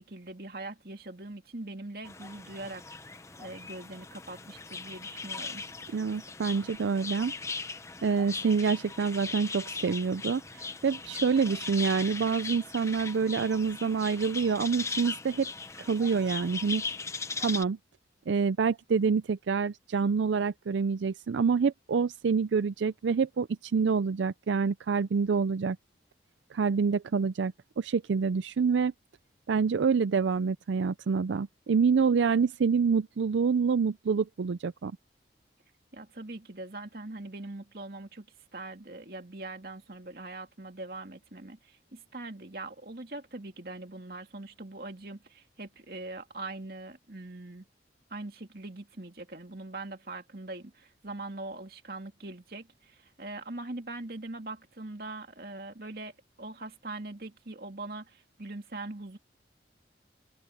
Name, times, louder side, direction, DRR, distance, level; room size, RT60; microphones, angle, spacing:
voice 1, 0.0-2.8 3.4-5.6 35.9-38.3 38.5-47.7 48.1-56.1 56.4-59.2, right 2 dB, 55° right, 2.5 m, -42 dB
sound 1, 2.0-17.6, left 4 dB, 15° left, 0.7 m, -39 dB
voice 2, 5.9-7.3 8.0-15.5 15.8-16.8 17.4-17.8 18.3-25.8 26.5-28.9 29.5-34.9, right 5 dB, 85° right, 0.4 m, -27 dB
head